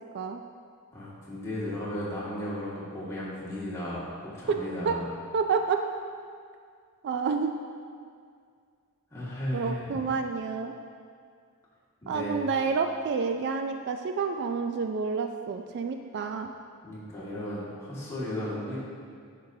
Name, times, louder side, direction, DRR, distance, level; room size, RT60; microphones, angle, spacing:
voice 1, 0.9-5.0 9.1-10.0 12.0-12.4 16.8-18.8, left 1 dB, 15° left, -9 dB, 1.8 m, -35 dB
voice 2, 5.3-5.8 7.0-7.5 9.5-10.8 12.1-16.5, right 5 dB, 50° right, 5 dB, 0.3 m, -29 dB
10.5 x 5.4 x 2.7 m, 2.2 s
head